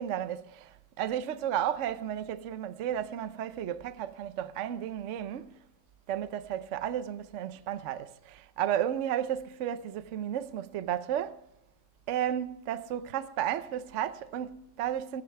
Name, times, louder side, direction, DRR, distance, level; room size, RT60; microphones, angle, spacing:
voice 1, 0.0-5.6 6.1-11.4 12.1-15.2, right 10 dB, 85° right, 0.6 m, -33 dB
17.0 x 14.5 x 3.4 m
omnidirectional pair, 2.2 m